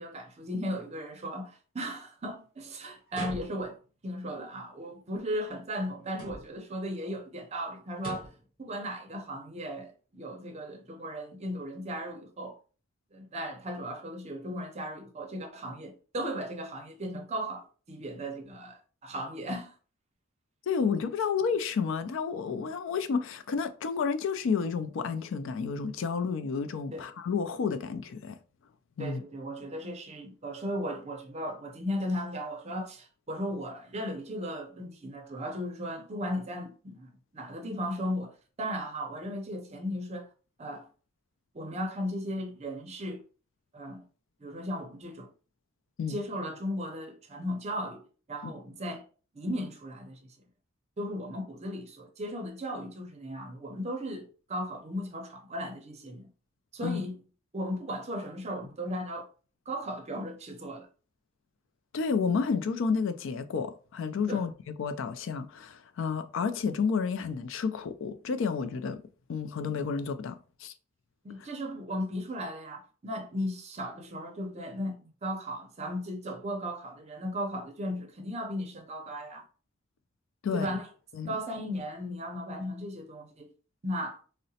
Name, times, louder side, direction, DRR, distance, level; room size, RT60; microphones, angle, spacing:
voice 1, 0.0-3.8 4.0-8.3 8.6-12.6 13.1-19.7 26.9-27.0 29.0-40.3 40.6-40.9 41.5-43.2 43.7-44.0 44.4-45.3 46.1-48.0 48.3-49.0 49.3-50.2 51.0-56.2 56.7-57.2 57.5-59.3 59.7-60.9 64.3-64.5 71.2-79.4 80.4-80.9 81.3-83.5 83.8-84.2, equal, 35° right, 0.5 m, -36 dB
sound 1, 3.1-3.9 6.1-6.7 7.9-8.5, equal, 45° left, 1.6 m, -42 dB
voice 2, 20.7-28.4 29.0-29.2 46.0-46.2 48.4-48.5 56.8-57.0 61.9-69.0 69.3-70.7 80.4-80.7 81.1-81.4, left 5 dB, 70° left, 0.4 m, -31 dB
3.8 x 2.1 x 2.7 m
head